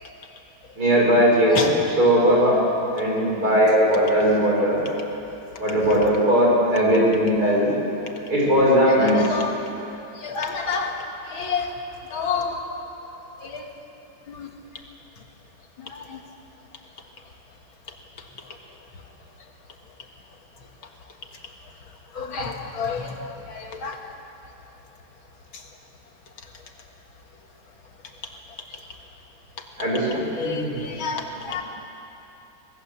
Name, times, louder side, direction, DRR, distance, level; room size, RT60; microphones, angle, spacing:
voice 1, 0.8-1.7 2.0-2.6 2.9-4.8 5.6-7.7 8.3-9.2 29.8-30.9, equal, 45° right, -3 dB, 6.2 m, -19 dB
voice 2, 8.9-9.6 10.2-11.0 11.3-11.8 12.1-12.6 13.4-13.6 14.3-14.5 15.8-16.2 22.1-24.0 25.5-25.6 30.1-31.6, left 5 dB, 75° left, 3 dB, 2.5 m, -29 dB
25.0 x 20.0 x 7.4 m, 3.0 s
omnidirectional pair, 2.3 m